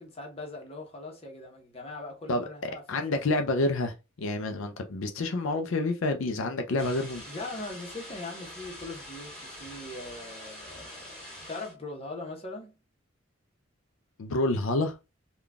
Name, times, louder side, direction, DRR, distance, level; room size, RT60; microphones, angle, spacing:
voice 1, 0.0-3.4 7.3-12.8, left 2 dB, 30° left, 0.9 m, -41 dB
voice 2, 2.3-7.2 14.2-14.9, left 2 dB, 75° left, 0.4 m, -28 dB
sound 1, 6.8-11.7, left 1 dB, 5° left, 1.4 m, -44 dB
3.8 x 2.3 x 3.4 m
head